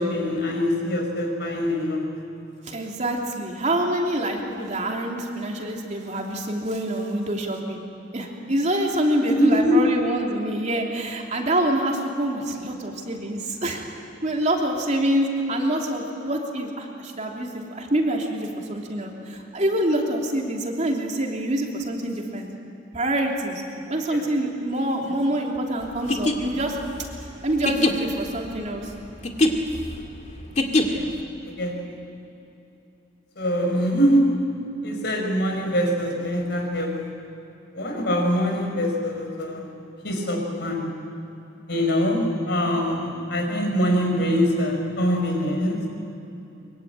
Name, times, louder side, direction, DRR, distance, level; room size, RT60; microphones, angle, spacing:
voice 1, 0.0-2.1 9.3-9.8 24.1-24.2 30.9-31.1 31.4-31.7 33.4-34.2 34.8-36.9 37.7-39.7 40.0-40.9 41.7-45.8, equal, 60° left, 2 dB, 5.4 m, -23 dB
voice 2, 2.6-7.8 8.1-13.8 14.2-22.5 22.9-23.6 23.9-26.8 27.4-28.9, right 1 dB, 35° right, 0 dB, 3.1 m, -26 dB
sound 1, 25.9-31.2, left 2 dB, 35° left, 2.1 m, -24 dB
24.0 x 23.5 x 9.1 m, 2.9 s
head